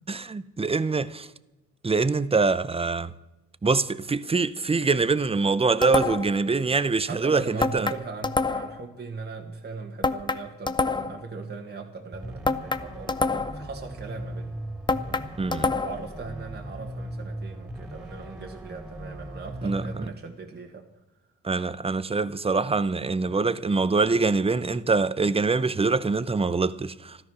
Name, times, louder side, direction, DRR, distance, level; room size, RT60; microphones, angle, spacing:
voice 1, 0.1-1.3 1.8-3.1 3.6-7.9 15.4-15.8 19.6-20.1 21.4-27.2, right 4 dB, 20° right, 0.7 m, -24 dB
sound 1, 5.8-6.4 7.6-8.8 10.0-11.2 12.4-13.7 14.9-16.1, left 3 dB, 15° left, 0.7 m, -26 dB
voice 2, 7.1-14.6 15.0-15.3 15.8-20.9, right 4 dB, 35° right, 1.7 m, -39 dB
sound 2, 12.1-20.1, right 1 dB, 5° right, 3.6 m, -38 dB
13.5 x 13.0 x 6.2 m
cardioid pair, 85°, 29 cm